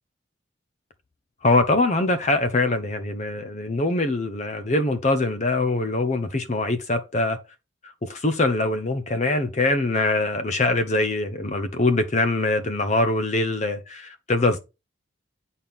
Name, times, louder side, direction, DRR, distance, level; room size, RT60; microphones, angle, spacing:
voice 1, 1.4-7.4 8.0-14.6, left 2 dB, 35° left, 0.7 m, -23 dB
9.0 x 4.3 x 3.5 m
head